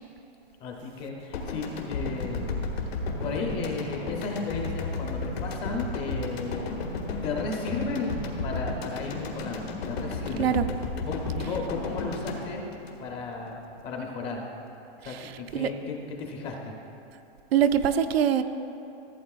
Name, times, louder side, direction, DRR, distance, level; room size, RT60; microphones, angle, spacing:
voice 1, 0.6-2.6 3.2-6.8 7.2-10.6 11.1-12.6 13.0-14.4 15.0-16.7, left 3 dB, 20° left, 1 dB, 0.6 m, -34 dB
sound 1, 1.3-13.5, left 3 dB, 80° left, 1.6 m, -33 dB
voice 2, 15.0-15.7 17.5-18.4, right 9 dB, 70° right, 9 dB, 0.6 m, -24 dB
15.0 x 8.4 x 2.4 m, 2.9 s
hypercardioid pair, 160°, 31 cm